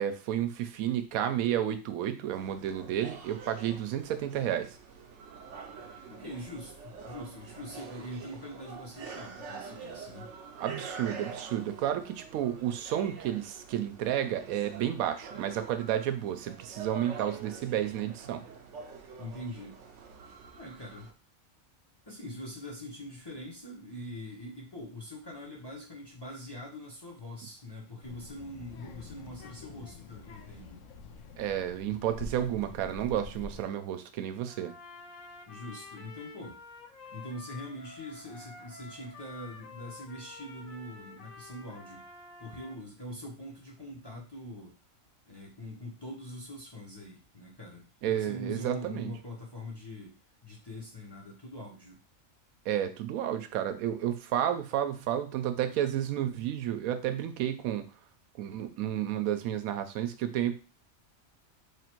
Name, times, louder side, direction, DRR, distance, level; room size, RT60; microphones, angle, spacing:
voice 1, 0.0-4.7 10.6-18.4 31.4-34.7 48.0-49.1 52.7-57.9 58.4-60.6, right 11 dB, 90° right, 9 dB, 1.0 m, -31 dB
sound 1, 2.3-21.1, right 5 dB, 65° right, 0.9 m, -46 dB
voice 2, 6.1-10.3 19.2-19.8 20.5-21.1 22.1-30.8 35.5-36.6 37.1-42.1 42.4-44.8 45.3-50.2 50.4-52.0, left 1 dB, 20° left, -2 dB, 0.7 m, -43 dB
Child speech kid speaking, 28.0-33.6, left 3 dB, 70° left, 0.9 m, -46 dB
Trumpet, 34.5-42.8, left 4 dB, 85° left, 1.2 m, -49 dB
3.2 x 2.5 x 4.4 m, 0.34 s
omnidirectional pair, 1.4 m